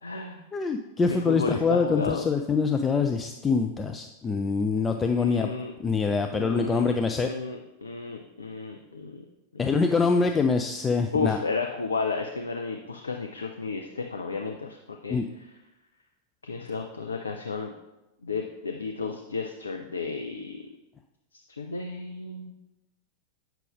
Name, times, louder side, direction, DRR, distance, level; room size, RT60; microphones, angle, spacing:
voice 1, 0.0-0.4 1.3-2.3 5.0-5.7 6.3-9.2 11.1-15.2 16.4-17.7 18.2-20.6 21.6-22.5, left 4 dB, 75° left, 3 dB, 0.5 m, -33 dB
voice 2, 0.5-5.5 5.8-7.3 9.6-11.4 15.1-15.3, left 4 dB, 15° left, 5 dB, 0.4 m, -25 dB
8.3 x 6.0 x 3.5 m, 0.98 s
figure-of-eight pair, 90°, 0 cm